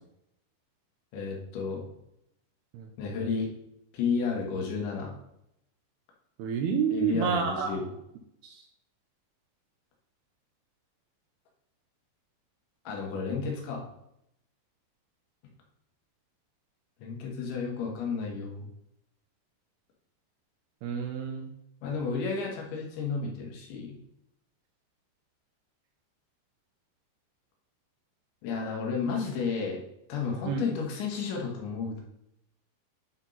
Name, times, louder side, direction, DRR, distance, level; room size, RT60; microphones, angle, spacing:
voice 1, 1.1-1.9 3.0-3.5 3.9-5.2 6.9-7.9 12.9-13.9 17.0-18.7 21.8-24.0 28.4-29.8 30.1-32.0, left 5 dB, 80° left, -1 dB, 3.9 m, -32 dB
voice 2, 6.4-7.8 8.4-8.7 20.8-21.5 30.5-30.6, right 6 dB, 80° right, 4 dB, 2.5 m, -29 dB
11.0 x 4.5 x 4.0 m, 0.80 s
omnidirectional pair, 5.2 m